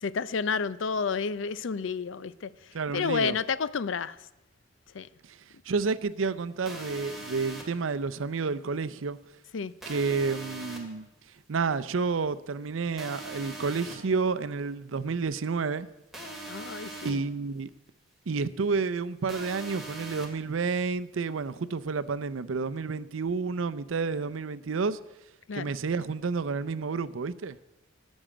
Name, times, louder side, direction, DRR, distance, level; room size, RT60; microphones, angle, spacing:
voice 1, 0.0-2.5 2.9-4.2 4.9-5.1 9.5-9.7 16.5-17.2 25.5-25.7, left 5 dB, 70° left, 0.5 m, -30 dB
voice 2, 2.7-3.4 5.3-5.4 5.7-9.2 9.9-11.1 11.5-15.9 17.0-17.7 18.3-25.0 25.5-27.6, right 4 dB, 85° right, 0.6 m, -30 dB
sound 1, 6.6-7.6 9.8-10.8 13.0-13.9 16.1-17.1 19.3-20.3, right 2 dB, ahead, 2.2 m, -41 dB
14.0 x 6.3 x 8.6 m
head